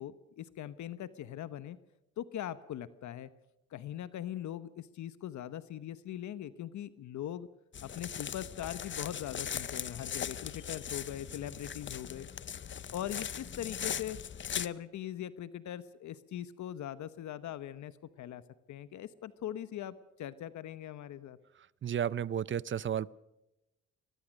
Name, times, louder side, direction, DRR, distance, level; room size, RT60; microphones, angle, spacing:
voice 1, 0.0-1.8 2.2-3.3 3.7-7.5 7.8-12.3 12.9-14.2 14.6-18.4 18.7-21.4, left 11 dB, 70° left, 15 dB, 1.0 m, -41 dB
sound 1, 7.7-14.7, left 8 dB, 40° left, 0.8 m, -39 dB
voice 2, 21.8-23.1, right 9 dB, 40° right, 21 dB, 0.6 m, -32 dB
23.0 x 19.5 x 6.4 m, 0.91 s
cardioid pair, 90°, 30 cm